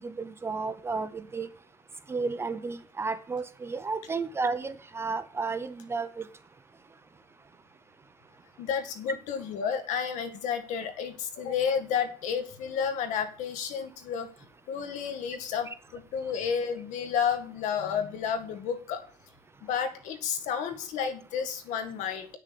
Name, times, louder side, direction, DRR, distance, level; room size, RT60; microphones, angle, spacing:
voice 1, 0.0-1.5 2.1-6.3, right 4 dB, 20° right, 13 dB, 0.6 m, -32 dB
voice 2, 8.6-14.3 14.7-19.0 19.6-22.3, left 7 dB, 60° left, 9 dB, 1.8 m, -31 dB
9.0 x 6.6 x 6.8 m, 0.40 s
cardioid pair, 140°, 14 cm